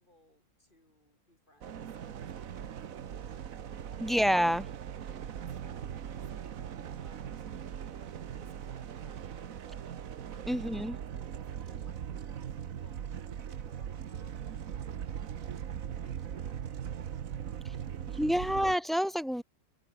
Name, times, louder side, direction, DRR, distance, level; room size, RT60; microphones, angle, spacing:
voice 1, 0.0-4.2 5.1-15.5 16.0-18.8, left 1 dB, 30° left, 7.6 m, -64 dB
sound 1, 1.6-18.8, right 9 dB, 65° right, 1.5 m, -40 dB
voice 2, 4.0-4.7 10.5-10.9 18.2-19.4, equal, ahead, 0.4 m, -28 dB
omnidirectional pair, 1.6 m